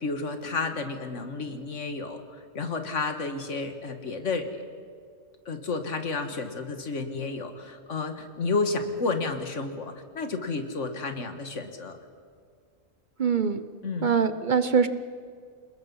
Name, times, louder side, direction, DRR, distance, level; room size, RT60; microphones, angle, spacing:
voice 1, 0.0-4.6 5.5-12.0 13.8-14.1, left 3 dB, 80° left, 7 dB, 2.0 m, -31 dB
voice 2, 13.2-13.6 14.0-14.9, right 6 dB, 45° right, 11 dB, 0.9 m, -23 dB
27.5 x 20.0 x 5.6 m, 2.1 s
omnidirectional pair, 1.2 m